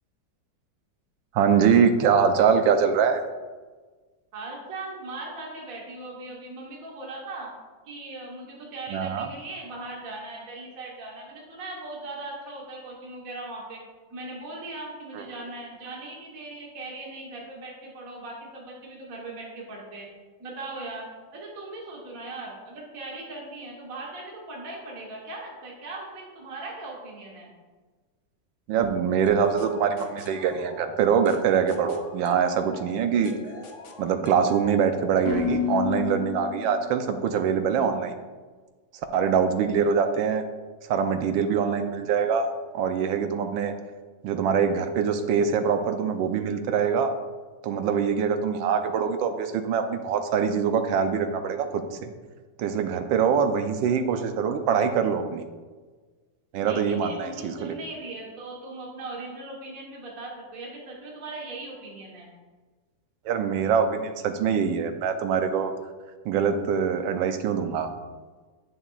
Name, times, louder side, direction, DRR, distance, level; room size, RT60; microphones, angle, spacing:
voice 1, 1.3-3.2 8.9-9.3 15.1-15.2 28.7-33.3 34.0-38.1 39.1-40.4 40.9-43.7 44.2-47.1 47.6-52.1 52.6-55.4 56.5-57.7 63.2-65.7 66.2-67.9, right 6 dB, 85° right, 8 dB, 1.4 m, -24 dB
voice 2, 4.3-7.5 7.9-13.8 14.1-20.1 20.4-21.1 21.3-27.5 39.8-39.9 56.6-62.3, right 2 dB, 50° right, -3 dB, 1.6 m, -39 dB
sound 1, 29.3-37.0, left 8 dB, 65° left, 0.7 m, -35 dB
8.6 x 6.9 x 2.4 m, 1.4 s
omnidirectional pair, 2.1 m